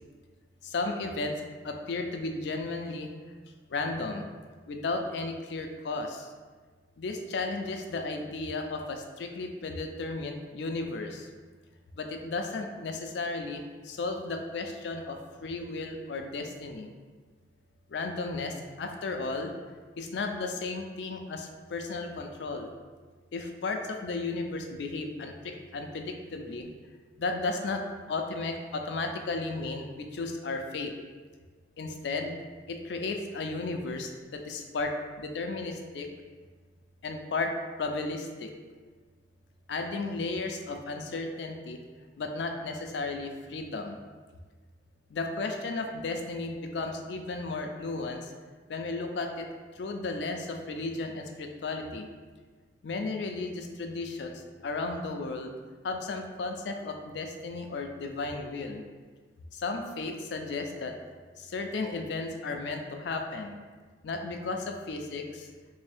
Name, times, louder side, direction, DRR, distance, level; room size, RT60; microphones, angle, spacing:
voice 1, 0.6-1.4 1.6-3.1 3.7-4.2 4.7-6.3 7.0-11.3 11.9-16.9 17.9-19.5 20.0-22.7 23.3-26.7 27.2-27.8 28.1-30.9 31.8-32.3 32.7-36.1 37.0-37.5 37.8-38.5 39.7-41.8 42.2-44.0 45.1-48.2 48.7-49.5 49.8-52.1 52.8-55.6 55.8-58.8 59.5-60.9 61.4-63.6 64.0-65.5, left 3 dB, 75° left, 4 dB, 0.4 m, -34 dB
3.3 x 2.6 x 3.3 m, 1.4 s
head